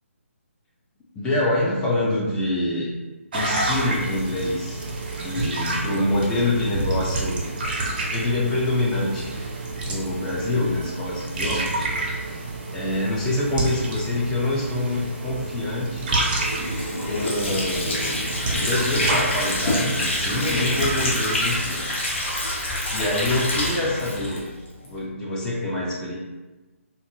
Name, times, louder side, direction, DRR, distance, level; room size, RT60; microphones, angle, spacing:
voice 1, 1.1-2.9 3.3-4.8 5.2-7.4 8.1-9.3 9.8-11.7 12.7-16.1 17.0-18.1 18.6-21.9 22.9-24.5 24.8-26.1, left 2 dB, 10° left, -5 dB, 0.4 m, -25 dB
sound 1, 3.3-21.6, right 2 dB, 40° right, 0.5 m, -29 dB
Water / Sink (filling or washing), 16.4-24.9, left 1 dB, 55° left, 0.9 m, -26 dB
2.6 x 2.5 x 2.7 m, 1.2 s
figure-of-eight pair, 145°, 8 cm